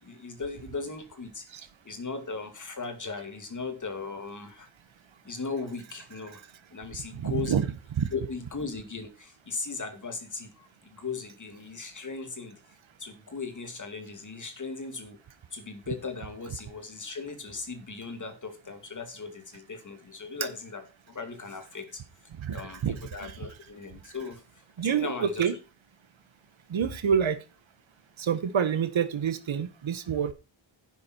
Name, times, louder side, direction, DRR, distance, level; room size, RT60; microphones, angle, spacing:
voice 1, 0.0-4.7 5.2-6.4 6.7-7.6 8.1-12.6 13.0-15.2 15.5-22.0 22.5-25.5, left 4 dB, 40° left, 8 dB, 2.4 m, -38 dB
voice 2, 7.1-7.6 8.0-8.1 22.4-23.4 24.8-25.5 26.7-27.4 28.2-30.3, right 7 dB, 80° right, 12 dB, 1.3 m, -27 dB
11.0 x 8.4 x 4.4 m, 0.29 s
wide cardioid pair, 165°, 46 cm